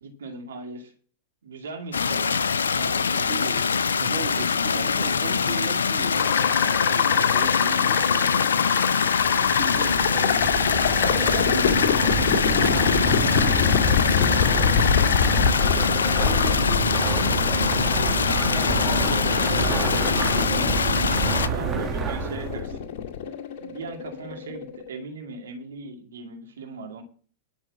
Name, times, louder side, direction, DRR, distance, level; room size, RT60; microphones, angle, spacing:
voice 1, 0.0-0.9 1.4-2.4 2.8-3.5 9.4-9.8 11.1-15.0 21.5-22.7 23.6-27.0, right 3 dB, 75° right, 3 dB, 2.2 m, -38 dB
sound 1, 1.9-21.5, left 5 dB, 80° left, 0.6 m, -24 dB
voice 2, 3.1-8.6 9.3-10.8 15.6-17.4 17.7-19.3 20.2-20.8 22.0-22.6, right 7 dB, 50° right, 3 dB, 2.5 m, -38 dB
sound 2, 6.1-24.9, left 8 dB, 50° left, 2.0 m, -25 dB
sound 3, 9.2-22.7, right 6 dB, 25° right, 1.9 m, -29 dB
11.0 x 6.3 x 7.4 m, 0.42 s
hypercardioid pair, 100°, 0 cm